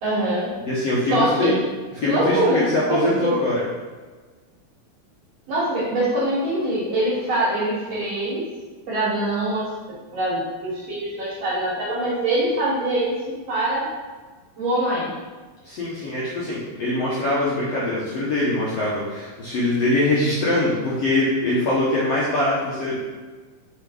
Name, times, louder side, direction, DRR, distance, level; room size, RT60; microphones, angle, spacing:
voice 1, 0.0-0.5 1.1-1.5 2.0-3.3 5.5-8.5 8.9-9.7 10.1-13.9 14.6-15.2, right 1 dB, 55° right, -6 dB, 2.1 m, -23 dB
voice 2, 0.6-1.6 2.0-3.6 15.6-23.0, left 2 dB, 65° left, -7 dB, 1.6 m, -23 dB
6.0 x 3.9 x 5.1 m, 1.4 s
omnidirectional pair, 4.1 m